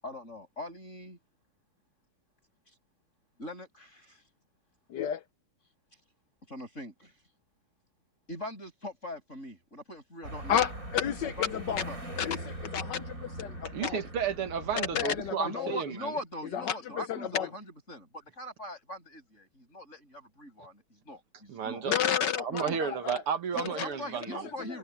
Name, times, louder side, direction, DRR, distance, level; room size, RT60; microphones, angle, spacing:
voice 1, 0.0-1.2 3.4-4.2 6.5-7.1 8.3-10.6 11.4-12.0 15.4-21.9 22.7-22.8 23.5-24.8, left 1 dB, 30° left, 8.4 m, -41 dB
voice 2, 4.9-5.2 10.5-11.8 12.2-14.0 14.7-15.7 16.5-17.5 21.8-23.2 23.6-23.9, left 9 dB, 70° left, 1.1 m, -31 dB
sound 1, 10.2-15.3, right 1 dB, 35° right, 8.2 m, -42 dB
voice 3, 13.7-16.1 21.5-21.9 22.4-24.4, right 7 dB, 75° right, 2.6 m, -32 dB
omnidirectional pair, 2.4 m